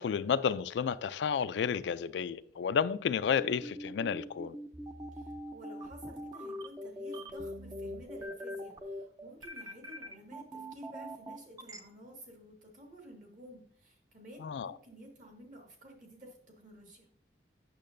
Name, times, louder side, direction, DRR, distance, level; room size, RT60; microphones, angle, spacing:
voice 1, 0.0-4.6 14.4-14.7, left 7 dB, 85° left, 0.3 m, -31 dB
sound 1, 3.4-11.8, equal, 20° right, 0.5 m, -42 dB
voice 2, 5.1-17.1, equal, 45° right, 1.8 m, -52 dB
8.4 x 6.5 x 2.6 m
head